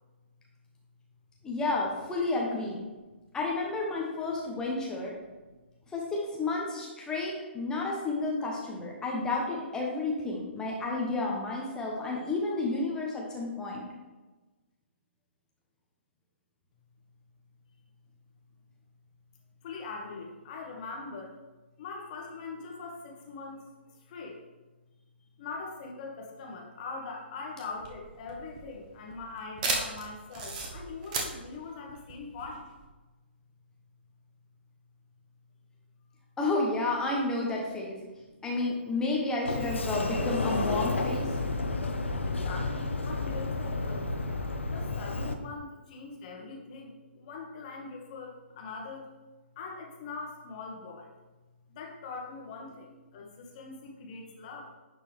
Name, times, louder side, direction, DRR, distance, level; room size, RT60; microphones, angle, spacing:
voice 1, 1.4-2.8 3.3-5.1 5.9-13.8 36.4-38.0 38.4-41.3, left 2 dB, 10° left, -2 dB, 1.1 m, -31 dB
voice 2, 19.6-21.3 21.8-23.7 24.1-24.4 25.4-32.7 38.3-38.5 42.2-44.1 44.7-49.1 49.5-51.1 51.7-54.8, left 4 dB, 40° left, 0 dB, 1.6 m, -42 dB
sound 1, 27.7-32.9, right 3 dB, 40° right, 1.3 m, -35 dB
Sliding door, 39.5-45.3, left 3 dB, 80° left, 0.8 m, -31 dB
10.5 x 4.5 x 3.5 m, 1.2 s
figure-of-eight pair, 130°, 6 cm